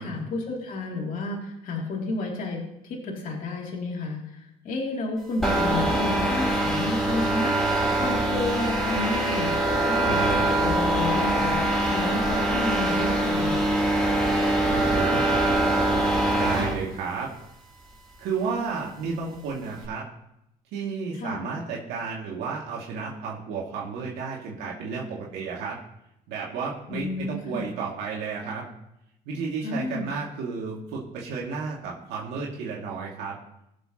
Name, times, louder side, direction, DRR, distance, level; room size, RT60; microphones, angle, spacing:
voice 1, 0.0-7.5 8.0-13.6 21.1-21.4 26.9-27.6 29.6-30.0, left 2 dB, 55° left, -1 dB, 2.8 m, -31 dB
sound 1, 5.4-16.8, right 1 dB, ahead, 4.4 m, -23 dB
voice 2, 10.1-10.5 14.7-15.2 16.3-17.3 18.2-20.1 20.7-25.8 26.3-28.6 29.3-33.4, right 5 dB, 90° right, -3 dB, 2.3 m, -32 dB
21.0 x 7.2 x 3.0 m, 0.83 s
cardioid pair, 110°, 17 cm